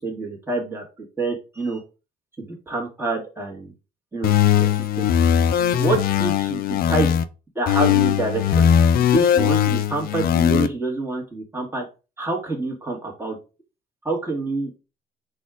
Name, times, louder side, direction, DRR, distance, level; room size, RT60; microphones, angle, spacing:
voice 1, 0.0-1.8 2.4-3.7 4.1-5.1 5.6-7.1 7.5-8.7 9.0-11.8 12.2-13.4 14.0-14.8, right 3 dB, 15° right, -1 dB, 1.7 m, -27 dB
sound 1, 4.2-7.2 7.7-10.7, left 9 dB, 60° left, 0.5 m, -19 dB
4.1 x 2.5 x 4.6 m, 0.31 s
cardioid pair, 110°, 17 cm